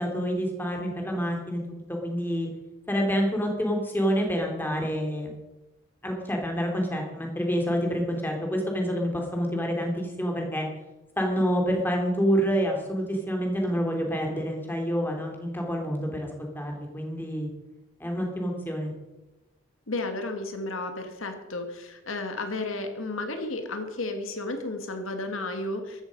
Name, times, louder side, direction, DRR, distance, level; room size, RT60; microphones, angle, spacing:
voice 1, 0.0-2.5 2.9-5.3 6.0-10.7 11.2-17.5 18.0-18.9, equal, 10° left, 1 dB, 3.0 m, -28 dB
voice 2, 19.9-26.0, left 2 dB, 80° left, 6 dB, 1.8 m, -33 dB
15.0 x 12.5 x 5.3 m, 1.0 s
head